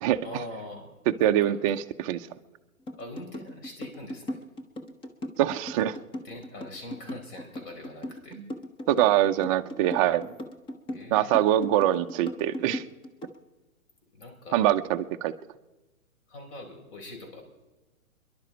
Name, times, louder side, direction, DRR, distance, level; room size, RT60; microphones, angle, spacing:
voice 1, 0.2-1.6 3.0-4.4 6.2-8.4 10.9-11.4 14.1-14.6 16.3-17.4, left 1 dB, 40° left, 3 dB, 4.9 m, -43 dB
voice 2, 1.2-2.3 5.4-6.0 8.3-8.5 8.9-10.3 11.1-12.8 14.5-15.3, right 12 dB, 25° right, 6 dB, 0.6 m, -24 dB
sound 1, 2.9-13.4, left 1 dB, 10° left, 0.9 m, -38 dB
28.5 x 11.5 x 4.5 m, 1.1 s
hypercardioid pair, 135°, 41 cm